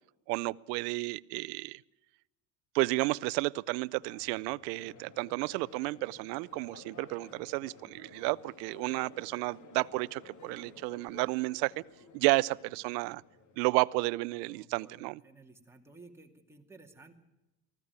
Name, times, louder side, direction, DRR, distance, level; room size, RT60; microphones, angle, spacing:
voice 1, 0.3-1.8 2.7-11.8 12.1-13.2 13.6-15.2, right 23 dB, 85° right, 20 dB, 0.7 m, -32 dB
Crowd, 3.9-14.0, left 4 dB, 35° left, 2.7 m, -55 dB
voice 2, 14.4-17.1, right 3 dB, 5° right, 2 dB, 2.5 m, -55 dB
20.0 x 15.0 x 9.5 m, 0.96 s
supercardioid pair, 120°, 48 cm